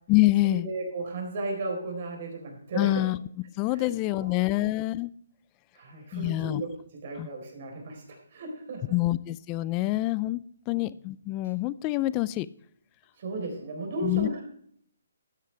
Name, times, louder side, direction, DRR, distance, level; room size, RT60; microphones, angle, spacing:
voice 1, 0.1-0.7 2.8-3.2 3.6-5.1 6.1-6.6 7.2-7.3 8.9-10.4 10.7-12.5 14.0-14.3, left 17 dB, 20° left, 18 dB, 0.3 m, -26 dB
voice 2, 0.6-3.0 3.7-4.7 5.8-9.0 10.7-10.9 13.2-14.4, right 2 dB, 45° right, 2 dB, 4.0 m, -35 dB
12.5 x 10.0 x 3.4 m, 0.65 s
hypercardioid pair, 165°, 0 cm